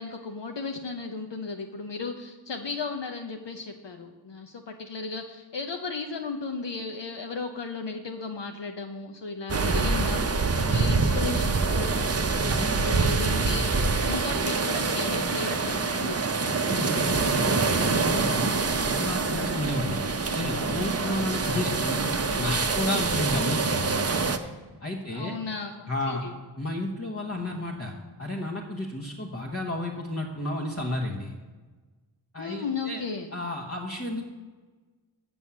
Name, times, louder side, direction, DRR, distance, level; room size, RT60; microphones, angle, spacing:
voice 1, 0.0-10.2 10.7-12.2 12.7-16.2 16.7-17.1 21.0-21.4 25.0-26.4 32.4-33.3, left 4 dB, 65° left, 4 dB, 0.8 m, -35 dB
sound 1, 9.5-24.4, right 4 dB, 35° right, 0.7 m, -25 dB
voice 2, 10.6-10.9 12.4-12.9 16.4-22.0 22.4-24.1 24.8-25.3 25.9-26.2 26.6-27.9 28.2-31.3 32.3-33.0 33.3-34.2, left 1 dB, 30° left, -2 dB, 1.2 m, -32 dB
7.1 x 6.2 x 7.2 m, 1.3 s
wide cardioid pair, 55°, 46 cm